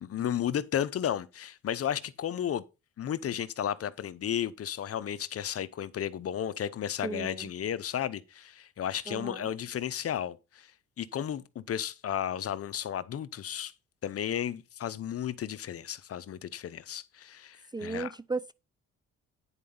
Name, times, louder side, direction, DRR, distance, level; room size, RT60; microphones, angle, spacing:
voice 1, 0.0-2.6 3.0-10.7 11.0-13.7 14.0-18.1, left 9 dB, 50° left, 0.8 m, -33 dB
voice 2, 7.0-7.5 9.1-9.5 17.7-18.5, right 3 dB, 15° right, 0.4 m, -35 dB
9.9 x 4.8 x 5.4 m
cardioid pair, 90°, 30 cm